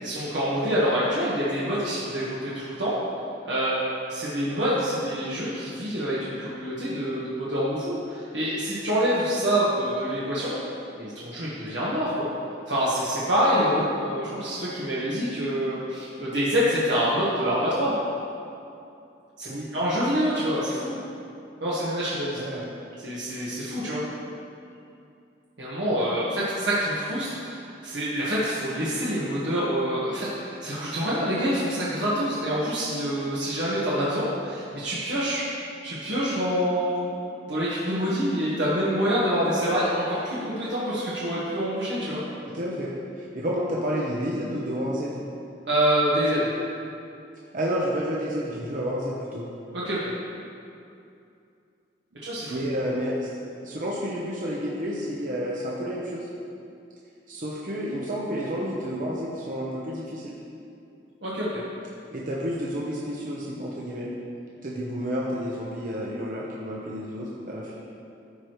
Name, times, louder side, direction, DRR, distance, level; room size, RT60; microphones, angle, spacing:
voice 1, 0.0-3.0 3.4-10.6 11.0-12.3 12.7-17.9 19.4-21.0 21.6-22.4 23.0-24.0 25.6-35.4 35.8-37.0 37.5-42.2 45.7-46.5 49.7-50.1 52.2-52.6 61.2-61.6, equal, 70° right, -9 dB, 1.4 m, -26 dB
voice 2, 13.5-13.8 19.5-19.7 22.4-22.7 42.5-42.9 43.2-45.2 47.5-49.5 52.5-53.3 53.6-56.3 57.3-60.4 62.1-64.1 64.6-67.7, equal, 45° right, -5 dB, 0.8 m, -30 dB
13.5 x 4.8 x 3.1 m, 2.5 s
head